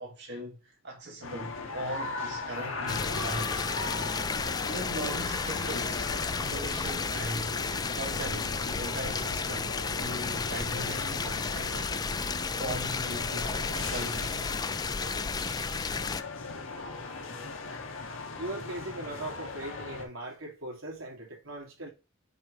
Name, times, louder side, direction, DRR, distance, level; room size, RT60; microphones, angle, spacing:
voice 1, 0.0-3.6 4.7-6.1 6.4-7.6 7.9-11.9 12.5-14.4, right 1 dB, 60° right, 1.4 m, -39 dB
sound 1, 1.2-20.0, left 3 dB, 75° left, 1.5 m, -39 dB
sound 2, 2.9-16.2, left 5 dB, 20° left, 0.3 m, -32 dB
voice 2, 18.3-21.9, right 1 dB, 80° right, 2.7 m, -39 dB
6.9 x 3.3 x 4.9 m
head